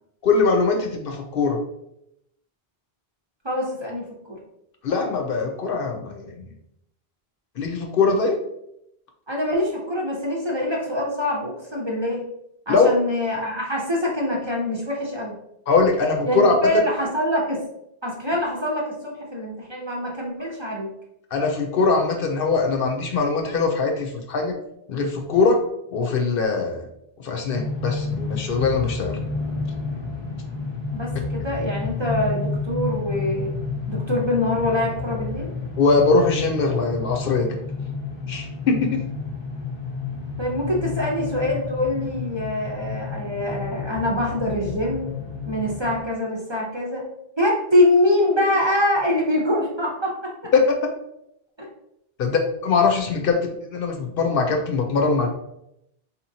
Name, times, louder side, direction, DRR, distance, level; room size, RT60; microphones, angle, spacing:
voice 1, 0.2-1.6 4.8-6.5 7.6-8.4 12.7-12.9 15.7-16.8 21.3-24.6 24.9-25.6 25.9-26.9 27.2-29.2 35.8-37.6 38.3-39.0 50.5-50.6 52.2-53.4 53.7-55.3, left 4 dB, 65° left, 2 dB, 0.7 m, -21 dB
voice 2, 3.4-4.4 9.3-12.2 12.7-15.3 16.2-17.6 18.0-20.9 30.9-33.5 33.9-35.5 40.4-45.1 45.5-47.0 47.4-50.5 51.6-51.7, left 1 dB, 30° right, -3 dB, 0.7 m, -24 dB
sound 1, 27.5-46.0, left 4 dB, 35° left, 0.5 m, -30 dB
4.0 x 2.9 x 2.7 m, 0.79 s
omnidirectional pair, 1.0 m